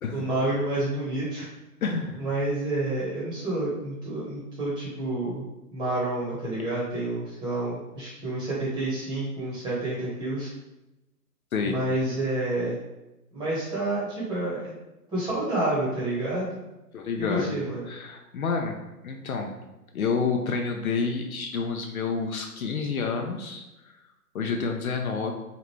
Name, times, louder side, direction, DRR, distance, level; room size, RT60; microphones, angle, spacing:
voice 1, 0.1-1.5 2.2-5.4 5.7-10.5 11.6-12.8 13.3-14.7 15.1-16.5 17.2-17.9, right 2 dB, 10° right, -8 dB, 1.2 m, -29 dB
voice 2, 1.8-2.2 11.5-11.8 16.9-17.5 17.9-18.8 19.0-19.5 19.9-23.9 24.3-25.3, left 5 dB, 60° left, 3 dB, 0.6 m, -29 dB
5.0 x 2.5 x 3.2 m, 0.98 s
hypercardioid pair, 145°, 48 cm